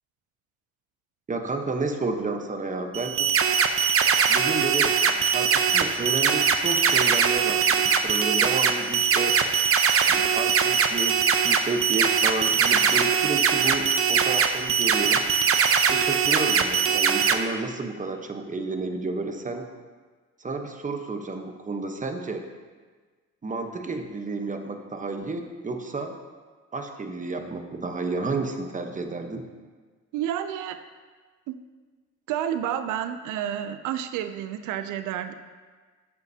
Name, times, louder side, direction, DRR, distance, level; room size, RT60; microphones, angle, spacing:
voice 1, 1.3-3.3 4.3-9.4 10.1-15.2 15.9-19.7 20.4-22.5 23.4-26.1 26.7-29.5, right 3 dB, 25° right, 5 dB, 1.0 m, -31 dB
sound 1, 2.9-17.3, right 6 dB, 45° right, 0.7 m, -22 dB
voice 2, 30.1-30.8 31.5-31.6 32.3-35.3, right 10 dB, 90° right, 10 dB, 0.5 m, -30 dB
12.0 x 8.1 x 2.8 m, 1.4 s
cardioid pair, 90°, 30 cm